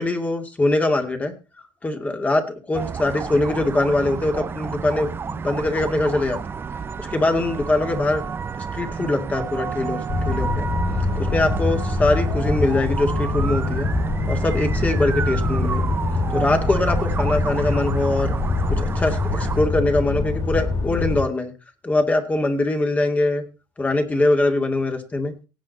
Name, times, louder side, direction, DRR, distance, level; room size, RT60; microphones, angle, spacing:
voice 1, 0.0-1.3 1.8-6.4 7.0-8.2 8.7-10.7 11.2-13.9 14.3-16.0 16.3-18.3 18.7-21.5 21.8-23.4 23.8-25.3, left 2 dB, 20° left, 5 dB, 2.2 m, -22 dB
sound 1, 2.7-19.6, right 6 dB, 30° right, 0.8 m, -30 dB
sound 2, 10.1-21.2, left 3 dB, 45° left, 6.4 m, -24 dB
18.0 x 7.7 x 4.1 m, 0.31 s
cardioid pair, 125°, 8 cm